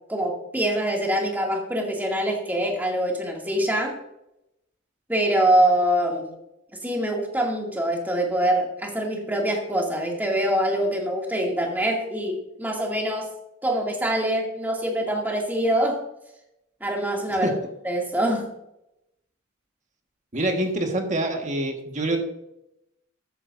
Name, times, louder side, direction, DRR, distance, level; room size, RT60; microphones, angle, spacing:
voice 1, 0.1-4.0 5.1-6.3 6.8-13.3 13.6-16.0 16.8-17.5 17.8-18.5, right 1 dB, 10° right, -1 dB, 2.4 m, -24 dB
voice 2, 20.3-22.2, right 1 dB, 40° right, 3 dB, 1.6 m, -25 dB
13.5 x 9.5 x 2.6 m, 0.82 s
head